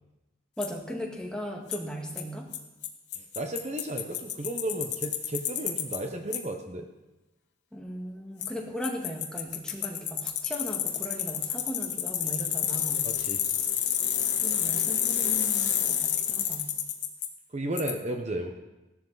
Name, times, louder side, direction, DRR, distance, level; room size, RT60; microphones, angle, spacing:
Bicycle, 0.6-0.7 1.7-1.8 2.2-2.3 2.5-2.6 2.8-2.9 3.1-6.0 6.3-6.4 8.4-8.5 8.8-17.3 17.8-17.9, left 9 dB, 65° left, 1.4 m, -29 dB
voice 1, 0.6-2.5 7.7-13.1 14.4-16.7, equal, 5° left, 0 dB, 1.7 m, -37 dB
voice 2, 3.2-6.9 13.0-13.4 17.5-18.5, right 1 dB, 40° right, 4 dB, 1.0 m, -34 dB
16.0 x 12.0 x 4.0 m, 1.0 s
head